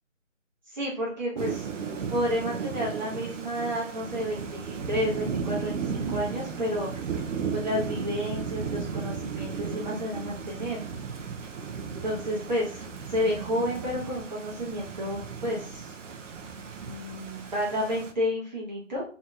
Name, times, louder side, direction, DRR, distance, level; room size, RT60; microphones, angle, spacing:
voice 1, 0.7-1.7 2.1-7.0 7.5-10.8 12.0-15.9 16.8-19.0, equal, 35° right, -5 dB, 0.9 m, -31 dB
Thunder / Rain, 1.4-18.1, right 6 dB, 70° right, 0.6 m, -35 dB
2.8 x 2.7 x 2.3 m, 0.40 s
figure-of-eight pair, 160°, 39 cm